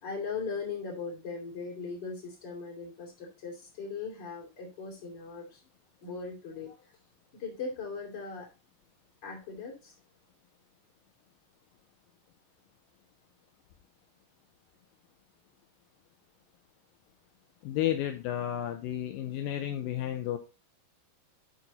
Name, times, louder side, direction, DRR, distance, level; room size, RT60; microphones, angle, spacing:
voice 1, 0.0-5.6 6.0-6.8 7.3-8.5 9.2-9.9, left 4 dB, 30° left, -1 dB, 3.1 m, -39 dB
voice 2, 17.6-20.4, left 11 dB, 80° left, 6 dB, 2.3 m, -32 dB
11.0 x 4.3 x 4.0 m, 0.29 s
omnidirectional pair, 4.3 m